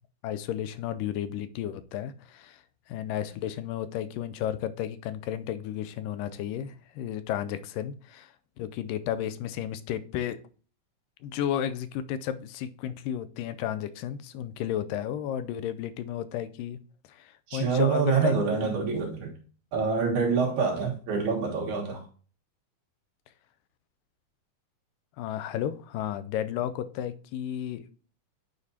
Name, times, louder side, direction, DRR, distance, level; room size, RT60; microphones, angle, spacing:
voice 1, 0.2-10.4 11.2-16.8 17.1-18.6 25.2-27.8, left 10 dB, 85° left, 2.2 m, -33 dB
voice 2, 17.5-19.3 19.7-22.0, right 5 dB, 60° right, 2.7 m, -26 dB
9.4 x 5.1 x 2.7 m
omnidirectional pair, 3.9 m